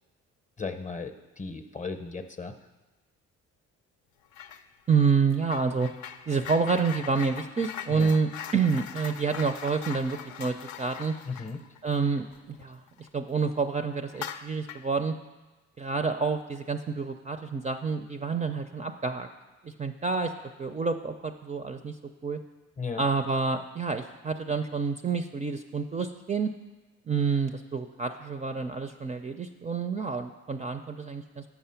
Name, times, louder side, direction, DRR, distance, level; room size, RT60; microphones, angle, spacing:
voice 1, 0.6-2.6 7.9-8.1 11.3-11.6 22.8-23.0, left 4 dB, 25° left, 8 dB, 0.7 m, -36 dB
sound 1, 4.3-4.6 4.9-13.1 13.4-13.6 14.1-14.9, left 9 dB, 70° left, 0.5 m, -42 dB
voice 2, 4.9-5.9 6.3-11.1 11.8-15.1 15.8-19.3 19.6-20.3 20.6-21.9 22.2-22.4 23.0-26.5 27.1-31.4, right 5 dB, 25° right, 7 dB, 0.4 m, -28 dB
7.3 x 5.8 x 5.6 m, 1.1 s
cardioid pair, 90°, 30 cm